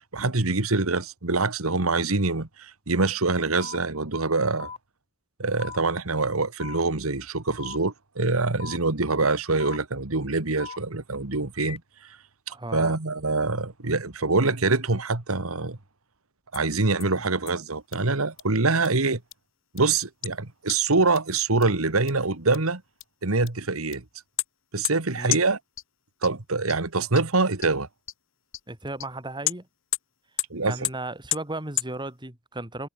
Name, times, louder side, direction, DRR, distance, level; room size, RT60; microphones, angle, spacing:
voice 1, 0.0-4.7 5.4-12.2 12.5-15.8 16.5-19.2 19.7-22.8 23.2-24.0 24.7-25.6 26.2-27.9 30.5-30.8, right 3 dB, 85° right, 1.9 m, -25 dB
sound 1, 3.6-3.8 4.6-4.8 5.6-5.8 6.6-6.8 7.6-7.8 8.6-8.8 9.6-9.8 10.6-10.8 11.6-11.8, left 5 dB, 30° left, 2.2 m, -38 dB
voice 2, 12.5-12.9 17.1-17.2 25.2-25.4 28.7-29.7 30.6-32.9, right 2 dB, 20° right, 3.7 m, -35 dB
sound 2, 16.5-16.6 17.0-17.1 17.5-17.6 17.9-18.0 18.4-18.5 18.8-18.9 19.3-19.4 19.8-19.9 20.2-20.3 20.7-20.8 21.1-21.2 21.6-21.7 22.1-22.2 22.5-22.6 23.0-23.1 23.5-23.6 23.9-24.0 24.4-24.5 24.8-24.9 25.3-25.4 25.8-25.9 26.2-26.3 26.7-26.8 27.1-27.2 27.6-27.7 28.1-28.2 28.5-28.6 29.0-29.1 29.5-29.6 29.9-30.0 30.4-30.5 30.8-30.9 31.3-31.4 31.8-31.9, left 15 dB, 65° left, 4.7 m, -27 dB
head